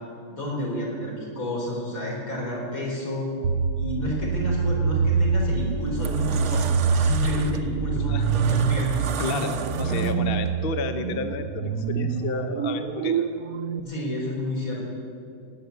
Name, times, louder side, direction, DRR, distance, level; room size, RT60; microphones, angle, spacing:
voice 1, 0.3-3.3 3.8-10.1 13.7-14.8, equal, 70° left, -4 dB, 4.8 m, -30 dB
sound 1, 3.4-13.8, right 5 dB, 80° right, 1.2 m, -25 dB
sound 2, 5.1-5.3 5.8-10.5, right 7 dB, 60° right, 1.0 m, -35 dB
voice 2, 7.9-8.3 9.2-13.3, left 4 dB, 50° left, 7 dB, 0.8 m, -31 dB
18.5 x 8.9 x 8.1 m, 2.5 s
omnidirectional pair, 1.5 m